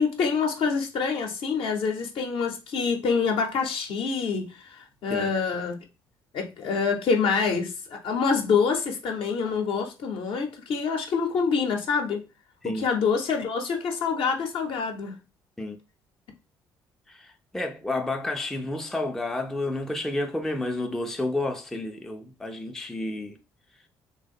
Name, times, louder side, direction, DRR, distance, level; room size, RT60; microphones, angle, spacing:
voice 1, 0.0-5.8 6.3-12.2 12.6-15.2, left 5 dB, 50° left, 0.7 m, -26 dB
voice 2, 17.1-23.4, left 2 dB, 5° left, 0.4 m, -30 dB
3.1 x 2.1 x 3.4 m
figure-of-eight pair, 45°, 11 cm